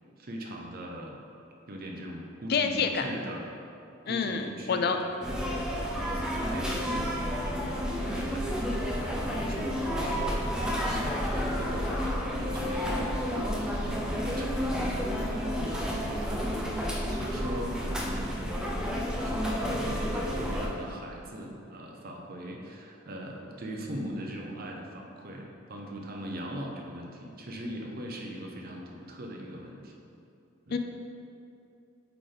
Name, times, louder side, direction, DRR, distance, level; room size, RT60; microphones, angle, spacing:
voice 1, 0.2-1.2 1.7-3.5 4.0-5.4 5.7-18.6 19.1-29.9 30.7-30.8, equal, 50° right, 0 dB, 0.7 m, -40 dB
voice 2, 2.5-3.0 4.1-5.0 30.7-30.8, left 6 dB, 55° left, 6 dB, 0.4 m, -27 dB
sound 1, 5.2-20.7, equal, 5° right, 0.6 m, -31 dB
8.3 x 3.3 x 3.8 m, 2.6 s
head